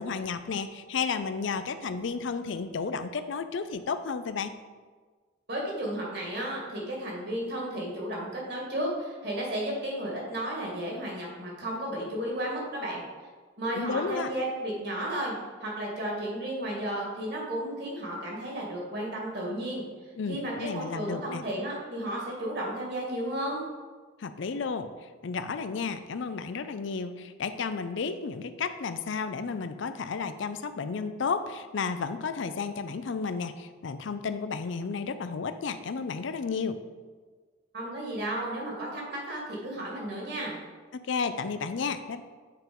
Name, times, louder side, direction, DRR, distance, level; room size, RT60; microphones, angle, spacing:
voice 1, 0.0-4.6 13.7-14.3 20.2-21.4 24.2-24.9 25.2-36.8 40.9-42.2, left 5 dB, 65° left, 11 dB, 0.4 m, -32 dB
voice 2, 5.5-13.0 13.6-15.4 15.6-19.8 20.3-23.7 37.7-40.6, right 1 dB, 55° right, -2 dB, 2.2 m, -33 dB
7.8 x 4.5 x 5.3 m, 1.5 s
head